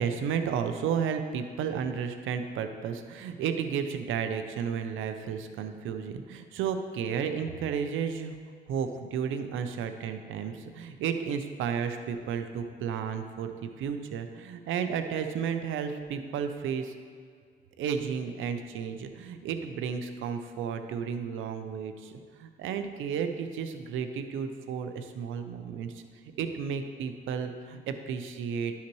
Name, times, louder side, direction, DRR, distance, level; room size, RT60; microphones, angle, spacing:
voice 1, 0.0-8.3 8.7-16.9 17.8-26.0 26.4-28.7, right 7 dB, 85° right, 8 dB, 0.6 m, -33 dB
11.5 x 5.7 x 3.1 m, 2.1 s
cardioid pair, 90°, 20 cm